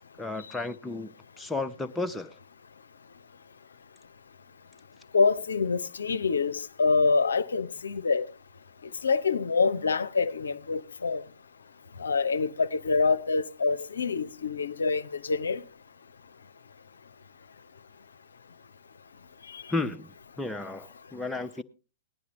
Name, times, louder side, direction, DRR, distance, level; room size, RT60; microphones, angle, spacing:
voice 1, 0.2-2.3 19.7-21.6, left 3 dB, 5° left, 0.6 m, -33 dB
voice 2, 5.1-8.2 9.0-11.2 12.0-15.6 19.5-19.6, left 4 dB, 70° left, 0.5 m, -26 dB
18.0 x 10.5 x 3.0 m
figure-of-eight pair, 105°, 0 cm